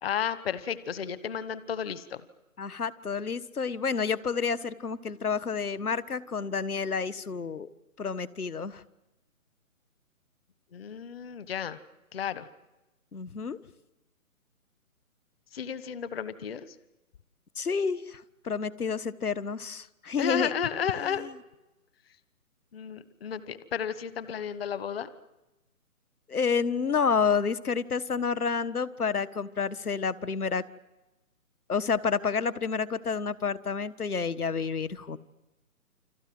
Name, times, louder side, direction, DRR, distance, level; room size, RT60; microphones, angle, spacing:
voice 1, 0.0-2.2 10.7-11.8 12.1-12.5 15.5-16.7 20.2-21.3 22.7-25.1, left 8 dB, 40° left, 14 dB, 1.2 m, -32 dB
voice 2, 2.6-7.7 8.0-8.8 13.1-13.6 17.6-20.5 21.0-21.3 26.3-30.6 31.7-35.2, left 5 dB, 80° left, 13 dB, 1.6 m, -29 dB
29.0 x 26.0 x 7.8 m, 1.0 s
hypercardioid pair, 155°, 44 cm